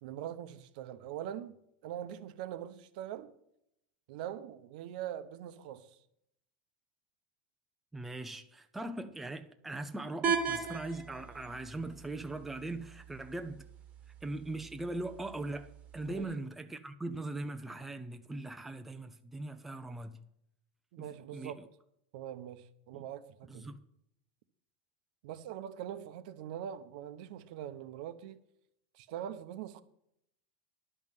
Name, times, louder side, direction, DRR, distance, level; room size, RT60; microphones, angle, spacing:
voice 1, 0.0-1.6 1.8-3.3 4.1-6.0 16.0-16.3 20.9-21.6 22.1-23.7 25.2-28.4 28.9-29.8, right 10 dB, 60° right, 0.8 m, -42 dB
voice 2, 7.9-13.7 14.2-20.2 21.3-21.5 22.9-23.0 23.5-23.8, right 2 dB, 5° right, 0.4 m, -40 dB
sound 1, 10.2-16.2, right 6 dB, 25° right, 1.2 m, -39 dB
11.0 x 5.6 x 7.7 m
supercardioid pair, 160°, 5 cm